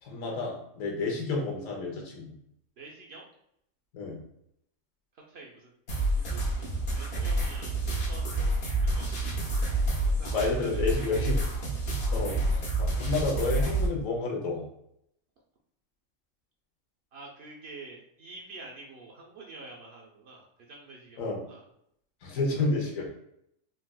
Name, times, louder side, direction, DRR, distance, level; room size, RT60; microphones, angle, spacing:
voice 1, 0.0-2.4 3.9-4.2 10.3-11.4 12.1-14.7 21.2-21.4 22.2-23.1, left 3 dB, 80° left, 0 dB, 1.2 m, -30 dB
voice 2, 2.8-3.3 5.1-5.7 6.2-6.7 6.9-7.8 8.1-9.4 10.0-11.0 17.1-21.6, right 3 dB, 60° right, -2 dB, 0.7 m, -48 dB
sound 1, 5.9-13.9, right 2 dB, 55° left, 0.9 m, -28 dB
3.9 x 2.3 x 2.2 m, 0.74 s
omnidirectional pair, 1.4 m